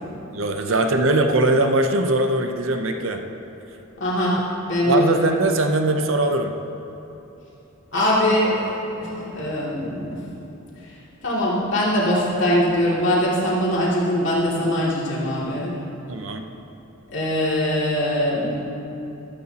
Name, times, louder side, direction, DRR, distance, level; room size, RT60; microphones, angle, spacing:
voice 1, 0.3-3.2 4.8-6.6 16.1-16.5, right 2 dB, 70° right, 5 dB, 0.8 m, -21 dB
voice 2, 4.0-4.4 4.6-5.2 7.9-10.2 11.2-15.7 17.1-18.6, equal, 60° left, -7 dB, 2.9 m, -22 dB
14.0 x 13.5 x 3.0 m, 3.0 s
head